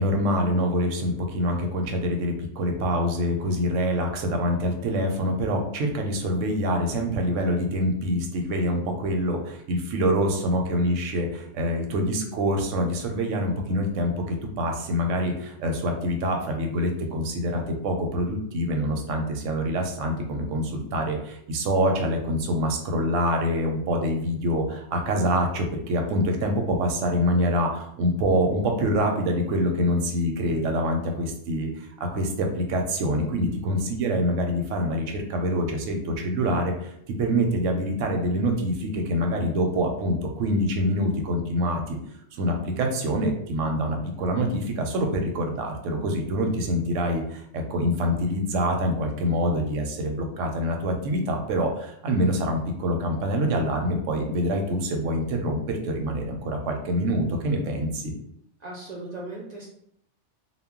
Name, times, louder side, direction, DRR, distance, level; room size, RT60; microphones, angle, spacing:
voice 1, 0.0-36.9 37.2-42.0 42.3-58.1, equal, 85° right, 3 dB, 0.9 m, -25 dB
voice 2, 58.6-59.7, right 2 dB, 60° right, -3 dB, 0.4 m, -37 dB
2.2 x 2.0 x 3.5 m, 0.72 s
omnidirectional pair, 1.2 m